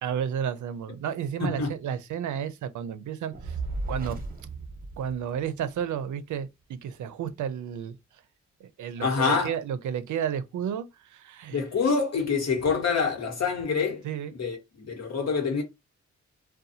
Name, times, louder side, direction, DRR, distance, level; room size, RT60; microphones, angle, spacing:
voice 1, 0.0-3.6 3.9-4.2 5.0-8.0 8.8-11.6 14.0-14.3, right 8 dB, 90° right, 0.5 m, -32 dB
voice 2, 1.4-1.7 9.0-9.5 11.5-14.0 14.3-15.6, left 5 dB, 65° left, 1.1 m, -26 dB
Fire, 3.3-5.8, right 3 dB, 30° right, 0.8 m, -35 dB
2.6 x 2.2 x 2.7 m
cardioid pair, 95°, 29 cm